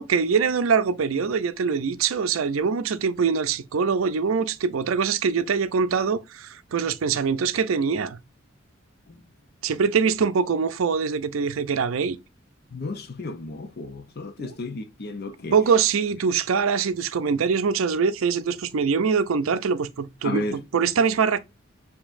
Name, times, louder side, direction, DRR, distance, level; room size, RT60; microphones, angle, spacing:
voice 1, 0.0-8.2 9.6-12.2 14.4-14.5 15.5-20.4 20.7-21.4, right 5 dB, 80° right, 0.5 m, -23 dB
voice 2, 12.7-15.5 20.2-20.7, left 2 dB, 50° left, 0.6 m, -33 dB
7.0 x 2.8 x 2.5 m
head